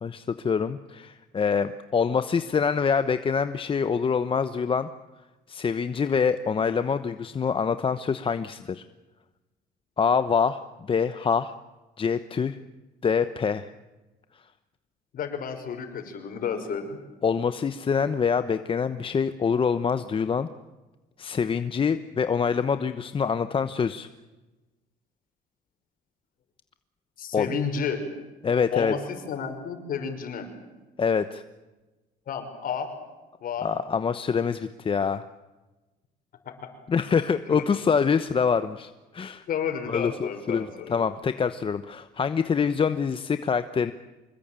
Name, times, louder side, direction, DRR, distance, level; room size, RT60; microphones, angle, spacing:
voice 1, 0.0-4.9 5.5-8.8 10.0-10.6 10.9-11.5 12.0-12.6 13.0-13.7 17.2-20.5 21.2-24.1 27.3-27.5 28.4-28.9 31.0-31.4 33.6-35.2 36.9-39.4 39.9-43.9, left 6 dB, 30° left, 11 dB, 1.0 m, -25 dB
voice 2, 15.1-17.0 27.2-28.0 28.7-29.0 29.3-30.5 32.3-32.9 33.4-33.7 36.5-36.7 37.5-37.6 39.5-41.1, left 7 dB, 55° left, 7 dB, 5.6 m, -31 dB
25.5 x 21.0 x 9.0 m, 1.1 s
cardioid pair, 110°, 17 cm